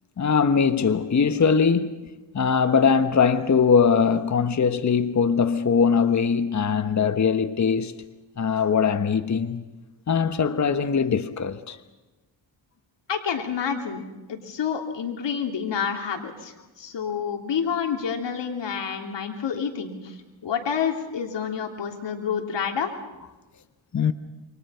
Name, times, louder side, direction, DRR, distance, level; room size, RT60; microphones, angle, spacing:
voice 1, 0.2-2.1 2.3-7.9 8.4-9.6 10.1-11.8 23.9-24.1, left 6 dB, 40° left, 1.2 m, -21 dB
voice 2, 13.1-14.0 14.3-22.9, left 7 dB, 65° left, 3.3 m, -28 dB
28.5 x 24.5 x 5.8 m
cardioid pair, 90°, 45 cm